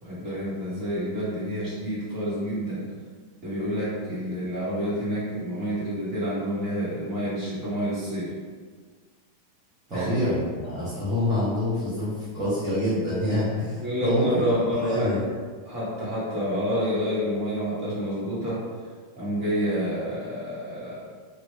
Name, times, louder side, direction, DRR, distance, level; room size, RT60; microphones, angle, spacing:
voice 1, 0.0-2.8 3.4-8.3 9.9-10.1 13.8-15.1 15.6-18.6 19.1-21.1, equal, 35° right, -9 dB, 1.5 m, -28 dB
voice 2, 9.9-14.3 14.7-15.2, left 1 dB, 15° right, -14 dB, 1.0 m, -26 dB
3.0 x 2.5 x 3.2 m, 1.5 s
supercardioid pair, 160°, 0 cm